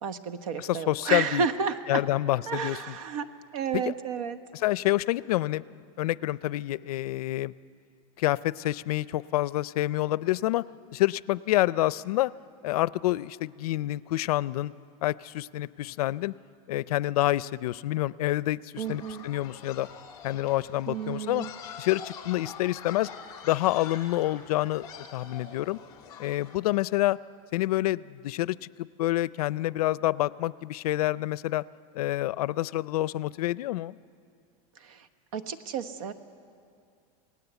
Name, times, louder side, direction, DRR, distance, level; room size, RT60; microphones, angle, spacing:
voice 1, 0.0-2.0 2.5-4.4 18.8-19.2 20.9-21.5 34.8-35.1 35.3-36.1, right 6 dB, 65° right, 10 dB, 1.3 m, -31 dB
voice 2, 0.6-1.5 1.9-2.9 4.6-7.5 8.2-10.6 10.9-12.3 12.6-14.7 15.0-16.3 16.7-19.9 20.2-21.4 21.8-23.1 23.4-25.8 26.2-27.2 27.5-31.6 31.9-34.0, left 16 dB, 90° left, 19 dB, 0.5 m, -28 dB
sound 1, 18.8-26.6, left 7 dB, 20° left, 2.5 m, -45 dB
27.5 x 18.5 x 8.1 m, 2.4 s
supercardioid pair, 180°, 19 cm